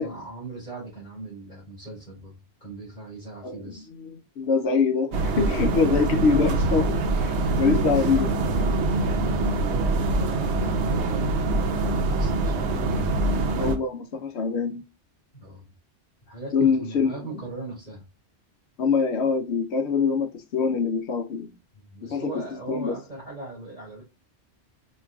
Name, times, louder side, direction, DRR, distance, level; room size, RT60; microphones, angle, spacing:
voice 1, 0.0-2.3 2.6-3.9 7.3-7.6 8.6-13.0 15.3-15.7 16.3-18.0 21.7-24.0, right 2 dB, 50° left, 2.5 m, -39 dB
voice 2, 3.4-8.3 12.7-12.9 13.3-14.8 16.5-17.2 18.8-21.5 22.1-22.2 22.7-22.9, left 5 dB, 75° left, 0.9 m, -24 dB
sound 1, 5.1-13.8, right 2 dB, 75° right, 0.9 m, -24 dB
5.1 x 2.4 x 2.2 m
omnidirectional pair, 1.2 m